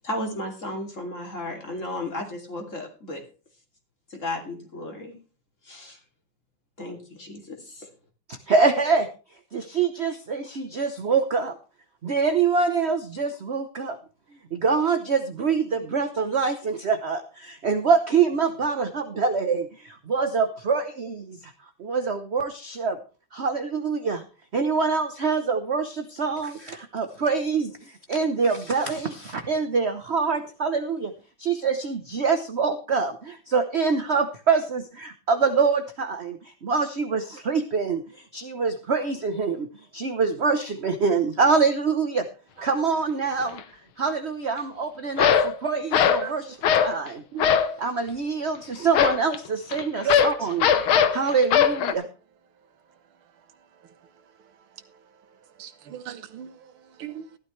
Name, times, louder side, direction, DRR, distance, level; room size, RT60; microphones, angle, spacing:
voice 1, 0.0-3.2 4.1-5.2 5.6-6.0 6.8-7.9, left 1 dB, 35° left, 3.2 m, -34 dB
voice 2, 8.3-9.1 9.5-11.6 12.0-14.0 14.5-21.5 21.8-23.0 23.3-24.2 24.5-31.1 31.4-39.7 39.9-42.3 42.6-43.6 44.0-47.2 47.8-50.7 51.1-52.1, right 5 dB, 45° right, 0.9 m, -25 dB
sound 1, 43.4-43.6 45.2-45.5 45.9-46.3 46.6-47.0 47.4-47.8 48.9-51.9, left 8 dB, 80° left, 1.9 m, -20 dB
voice 3, 46.2-46.6 47.3-47.5 50.0-50.2 55.6-56.7 57.0-57.3, right 9 dB, 85° right, 2.0 m, -34 dB
14.5 x 12.5 x 3.2 m
omnidirectional pair, 2.3 m